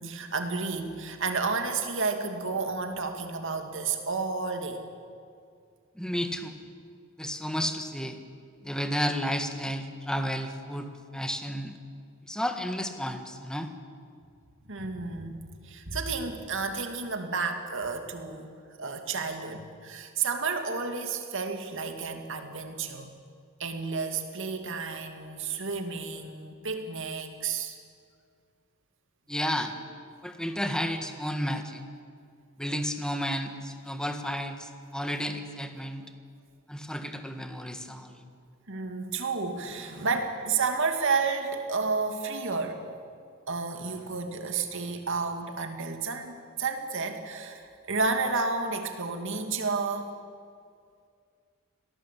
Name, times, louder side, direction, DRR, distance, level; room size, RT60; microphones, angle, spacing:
voice 1, 0.0-4.8 14.7-15.4 15.6-18.5 18.8-23.1 23.6-27.8 38.7-42.8 43.5-50.1, right 4 dB, 65° right, 5 dB, 2.5 m, -31 dB
voice 2, 5.9-6.6 7.2-8.2 8.6-10.9 11.1-11.7 12.3-13.7 29.3-29.7 30.2-31.8 32.6-36.0 36.7-38.2, equal, 5° left, 6 dB, 1.7 m, -32 dB
25.5 x 18.0 x 8.5 m, 2.2 s
head